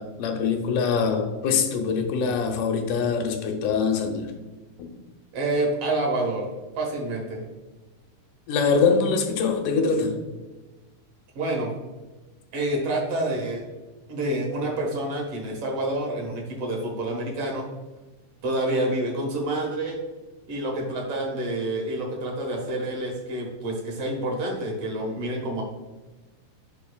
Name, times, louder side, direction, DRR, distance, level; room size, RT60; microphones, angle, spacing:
voice 1, 0.0-4.3 4.8-4.9 8.5-10.2, left 5 dB, 85° left, 5 dB, 2.3 m, -23 dB
voice 2, 5.3-6.5 6.8-7.4 11.4-11.7 12.5-13.6 14.1-17.7 18.4-20.0 20.5-25.6, right 1 dB, 55° right, 0 dB, 2.2 m, -28 dB
11.0 x 4.5 x 2.3 m, 1.2 s
omnidirectional pair, 3.6 m